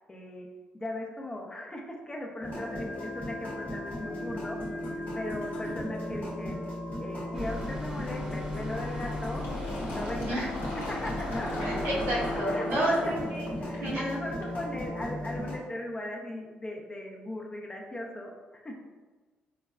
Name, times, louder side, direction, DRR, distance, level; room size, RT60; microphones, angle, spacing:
voice 1, 0.1-0.5 0.7-4.6 5.1-6.6 7.0-9.5 9.9-11.6 12.4-13.2 13.6-18.8, left 1 dB, 20° left, 0 dB, 0.5 m, -38 dB
sound 1, 2.4-15.6, left 1 dB, 45° left, 0.8 m, -36 dB
sound 2, 7.3-12.4, left 2 dB, 20° right, 0.8 m, -39 dB
Fill (with liquid), 9.4-14.8, left 1 dB, 80° left, 0.9 m, -39 dB
voice 2, 11.6-13.5 13.8-14.0, right 1 dB, 85° right, -5 dB, 0.9 m, -30 dB
3.9 x 2.2 x 2.2 m, 1.3 s
cardioid pair, 80°, 4 cm